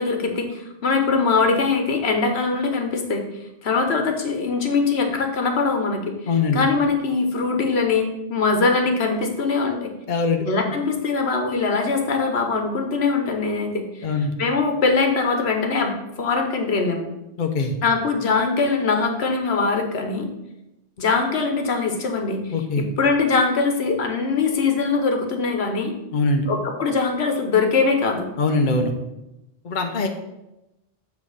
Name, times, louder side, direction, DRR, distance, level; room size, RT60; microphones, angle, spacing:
voice 1, 0.0-3.2 3.6-6.1 6.5-9.9 10.5-14.1 14.4-15.9 16.2-17.1 17.8-20.3 21.0-25.9 26.5-28.3, left 4 dB, 80° left, 4 dB, 1.3 m, -22 dB
voice 2, 6.3-6.6 10.1-10.4 14.0-14.3 17.4-17.7 22.5-22.9 26.1-26.5 28.4-28.9 29.6-30.1, left 3 dB, 55° left, 4 dB, 0.8 m, -22 dB
7.3 x 3.5 x 6.4 m, 0.92 s
omnidirectional pair, 1.1 m